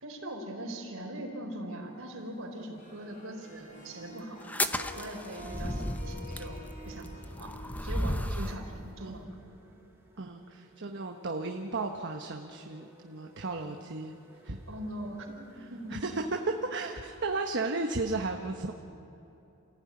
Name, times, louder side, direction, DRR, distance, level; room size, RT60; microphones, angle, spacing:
voice 1, 0.0-4.4 4.9-7.5 7.8-9.3 14.7-16.1, right 1 dB, 75° right, 1 dB, 4.4 m, -41 dB
sound 1, 1.6-17.7, right 1 dB, 10° right, 4.8 m, -60 dB
Harp, 2.8-9.1, left 1 dB, 40° left, 5.0 m, -49 dB
sound 2, 4.4-8.6, left 1 dB, 5° left, 0.9 m, -34 dB
voice 2, 10.2-14.1 14.4-14.6 15.6-16.2 16.7-18.7, right 3 dB, 60° right, 3 dB, 1.2 m, -35 dB
28.0 x 16.0 x 9.7 m, 3.0 s
head